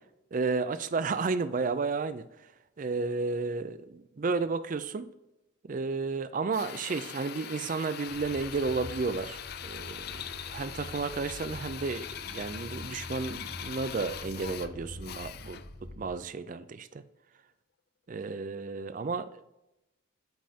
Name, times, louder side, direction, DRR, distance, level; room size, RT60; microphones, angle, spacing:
voice 1, 0.3-2.3 2.8-5.1 5.6-15.6 16.0-17.0 18.1-19.4, right 4 dB, 40° right, 13 dB, 0.4 m, -32 dB
Drill, 6.5-15.8, left 9 dB, 50° left, 0.3 m, -42 dB
sound 1, 8.1-16.1, left 1 dB, 65° left, 1.4 m, -46 dB
8.9 x 5.3 x 2.8 m, 0.90 s
head